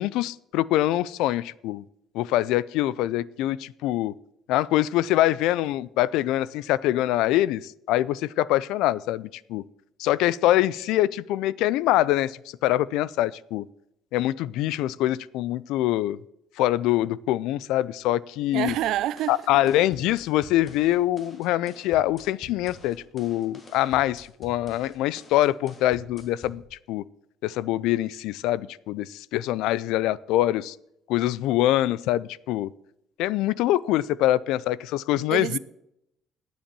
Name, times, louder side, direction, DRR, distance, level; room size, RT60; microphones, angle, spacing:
voice 1, 0.0-1.8 2.1-4.1 4.5-9.6 10.0-13.7 14.1-16.2 16.6-18.7 19.3-26.6 26.9-27.0 27.4-30.8 31.1-32.7 33.2-35.6, left 14 dB, 75° left, 0.3 m, -24 dB
voice 2, 18.5-19.4 35.3-35.6, right 13 dB, 60° right, 0.4 m, -27 dB
sound 1, 18.7-26.7, left 2 dB, 25° left, 1.6 m, -48 dB
10.0 x 7.3 x 6.8 m
cardioid pair, 170°, 0 cm